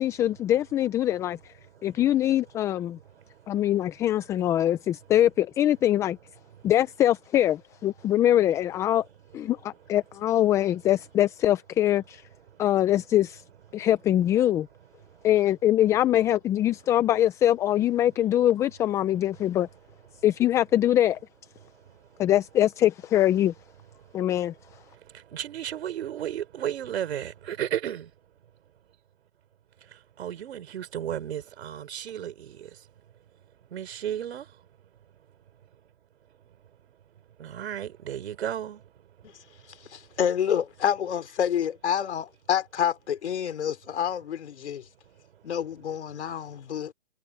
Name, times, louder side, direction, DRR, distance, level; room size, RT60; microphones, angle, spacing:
voice 1, 0.0-1.5 1.8-3.0 3.5-6.2 6.6-9.0 9.3-12.2 12.6-13.4 13.7-14.7 15.2-19.7 20.2-21.2 22.2-23.5 24.1-24.5, left 12 dB, 10° left, 0.4 m, -23 dB
voice 2, 25.3-28.1 30.2-32.3 33.7-34.4 37.4-38.8, right 10 dB, 65° right, 4.2 m, -33 dB
voice 3, 39.9-44.8 45.4-46.9, left 9 dB, 70° left, 3.7 m, -28 dB
hypercardioid pair, 135°, 35 cm